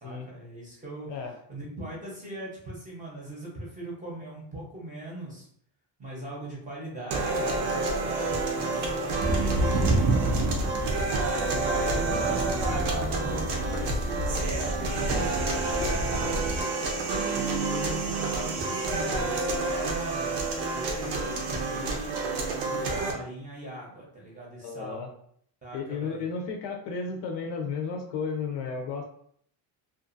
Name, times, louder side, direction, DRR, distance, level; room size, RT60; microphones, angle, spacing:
voice 1, 0.0-1.1 1.5-5.5 6.0-10.8 11.0-16.6 17.3-20.4 20.7-25.0 25.6-26.2, right 1 dB, 15° right, -4 dB, 0.8 m, -40 dB
sound 1, 7.1-23.1, right 3 dB, 75° right, 0.8 m, -29 dB
sound 2, 9.2-16.6, right 1 dB, 50° right, 0.5 m, -29 dB
voice 2, 11.4-12.4 15.0-15.3 24.6-25.1 25.7-29.0, left 5 dB, 60° left, 4 dB, 0.6 m, -34 dB
sound 3, 12.1-16.6, right 2 dB, 5° left, 0.4 m, -42 dB
2.6 x 2.4 x 2.5 m, 0.64 s
cardioid pair, 165°, 48 cm